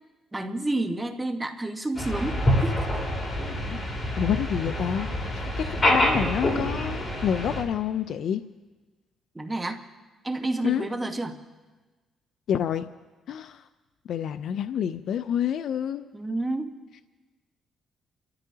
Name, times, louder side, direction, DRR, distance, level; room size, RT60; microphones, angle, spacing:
voice 1, 0.3-2.9 5.6-5.8 9.3-9.8 10.2-11.4 16.1-16.7, right 2 dB, 15° right, 5 dB, 1.3 m, -30 dB
sound 1, 1.9-7.6, left 1 dB, 30° left, 4.2 m, -26 dB
voice 2, 4.2-5.1 5.3-8.4 10.6-10.9 12.5-12.8 13.3-13.6 14.1-16.0, left 9 dB, 70° left, 10 dB, 0.4 m, -28 dB
29.5 x 14.0 x 2.8 m, 1.3 s
cardioid pair, 90°, 0 cm